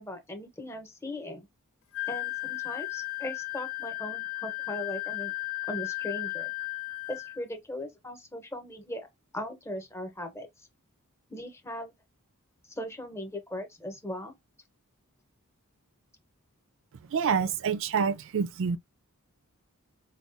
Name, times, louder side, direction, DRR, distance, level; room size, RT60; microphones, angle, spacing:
voice 1, 0.0-1.5 2.1-5.3 5.6-6.5 7.1-9.1 9.3-10.5 11.3-11.9 12.8-14.3, left 1 dB, 10° left, 0.9 m, -38 dB
Wind instrument woodwind instrument, 1.9-7.4, left 24 dB, 65° left, 0.5 m, -35 dB
voice 2, 17.1-18.8, right 6 dB, 60° right, 0.4 m, -27 dB
4.6 x 2.3 x 2.6 m
head